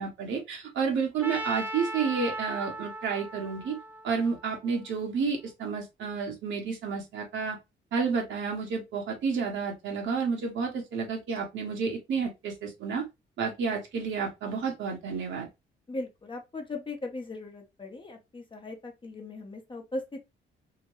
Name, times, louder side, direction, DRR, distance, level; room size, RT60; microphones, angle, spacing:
voice 1, 0.0-3.8 4.0-7.6 7.9-13.0 13.4-15.5, right 5 dB, 75° right, 1.1 m, -30 dB
Trumpet, 1.2-5.3, right 1 dB, 10° right, 0.6 m, -38 dB
voice 2, 15.9-20.2, left 2 dB, 25° left, 0.9 m, -38 dB
2.9 x 2.2 x 3.0 m
cardioid pair, 90°, 20 cm